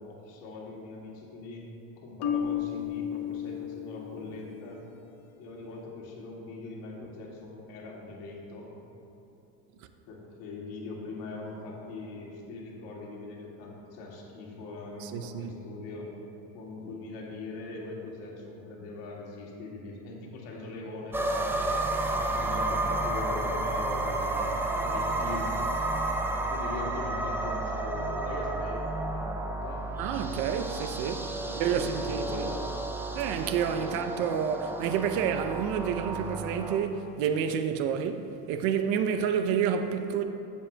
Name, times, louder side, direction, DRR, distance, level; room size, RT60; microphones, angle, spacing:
voice 1, 0.0-1.7 2.0-4.9 5.4-8.7 10.1-16.1 16.5-21.6 22.2-25.6 26.5-29.9 31.4-32.7 33.6-34.0, left 2 dB, 70° left, 2.1 m, -41 dB
Marimba xylophone, 2.2-4.3, left 9 dB, 45° left, 0.6 m, -32 dB
voice 2, 15.0-15.5 21.9-22.2 30.0-31.3 31.6-32.5 33.1-40.2, right 7 dB, 70° right, 0.7 m, -29 dB
sound 1, 21.1-36.8, right 2 dB, 5° right, 0.4 m, -31 dB
14.5 x 7.3 x 2.2 m
supercardioid pair, 120°, 38 cm